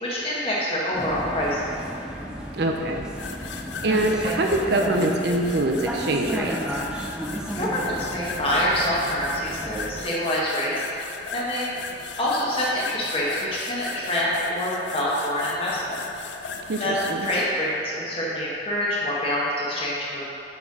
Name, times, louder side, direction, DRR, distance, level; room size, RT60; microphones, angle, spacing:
voice 1, 0.0-1.6 7.5-10.7 11.3-11.8 12.2-16.0 16.8-20.3, equal, 30° left, -6 dB, 1.4 m, -26 dB
Vehicle, 0.9-10.1, equal, 5° right, 0.6 m, -33 dB
voice 2, 2.5-3.1 3.8-6.6 16.7-17.3, right 2 dB, 60° right, 2 dB, 0.6 m, -24 dB
sound 1, 3.1-17.5, left 5 dB, 75° left, 0.5 m, -37 dB
7.1 x 4.5 x 4.7 m, 2.7 s
head